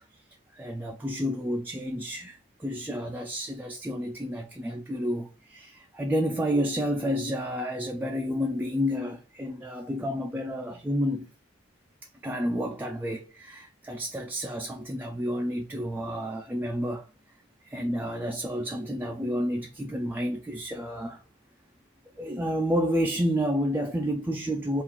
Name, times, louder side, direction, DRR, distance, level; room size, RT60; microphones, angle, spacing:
voice 1, 0.5-11.3 12.2-17.1 17.6-21.2 22.2-24.8, equal, 10° right, 0.3 m, -30 dB
3.6 x 2.4 x 4.4 m
head